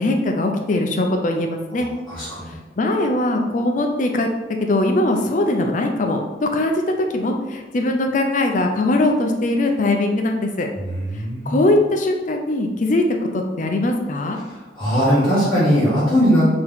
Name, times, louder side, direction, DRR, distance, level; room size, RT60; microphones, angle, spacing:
voice 1, 0.0-1.9 2.5-4.3 4.6-10.7 11.5-13.0 13.3-14.4, left 2 dB, 45° left, 3 dB, 0.5 m, -21 dB
voice 2, 2.1-2.6 10.8-11.6 14.8-16.5, equal, 10° left, -15 dB, 1.4 m, -19 dB
4.5 x 2.9 x 3.5 m, 1.2 s
head